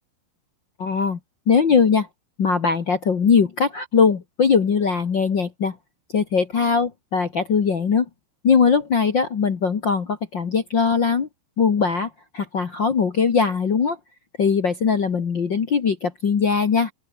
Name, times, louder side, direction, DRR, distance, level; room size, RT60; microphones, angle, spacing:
voice 1, 0.8-1.2 1.5-2.1 2.4-5.8 6.1-8.0 8.4-11.3 11.6-14.0 14.4-16.9, left 5 dB, 90° left, 1.0 m, -20 dB
open air
omnidirectional pair, 5.2 m